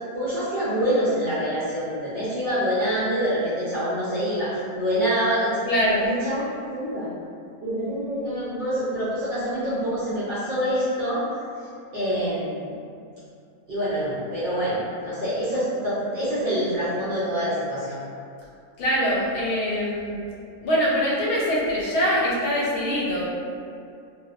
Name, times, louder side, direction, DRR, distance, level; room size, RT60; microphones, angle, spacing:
voice 1, 0.1-5.6 6.0-6.4 6.7-7.1 7.6-11.2 11.9-12.7 13.7-18.0, equal, 70° right, -11 dB, 0.5 m, -26 dB
voice 2, 5.7-6.1 18.8-20.2 20.6-23.2, equal, 90° left, -6 dB, 1.1 m, -23 dB
2.6 x 2.0 x 2.3 m, 2.4 s
omnidirectional pair, 1.5 m